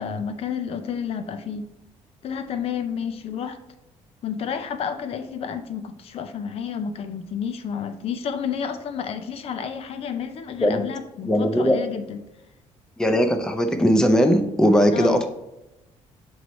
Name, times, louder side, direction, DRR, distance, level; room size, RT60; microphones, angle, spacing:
voice 1, 0.0-1.7 2.2-3.6 4.2-12.2 14.9-15.2, left 7 dB, 55° left, 9 dB, 0.5 m, -30 dB
voice 2, 11.2-11.8 13.0-15.3, equal, 5° left, 6 dB, 0.5 m, -19 dB
7.7 x 3.1 x 4.0 m, 0.93 s
cardioid pair, 135°, 12 cm